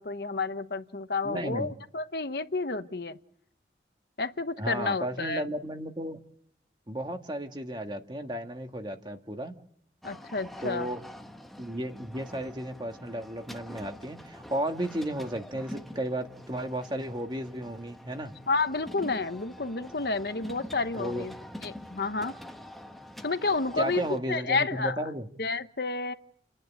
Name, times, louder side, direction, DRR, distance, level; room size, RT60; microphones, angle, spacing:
voice 1, 0.0-3.2 4.2-5.4 10.0-10.9 18.5-21.3 21.6-22.3 23.2-25.1 25.4-26.1, left 3 dB, 60° left, 10 dB, 1.0 m, -30 dB
voice 2, 1.2-1.7 4.6-6.2 6.9-9.5 10.6-11.0 11.6-18.3 20.9-21.2 23.8-25.3, right 1 dB, 25° right, 5 dB, 1.7 m, -34 dB
sound 1, 10.0-24.2, left 1 dB, ahead, 1.1 m, -46 dB
30.0 x 10.5 x 9.1 m, 0.69 s
head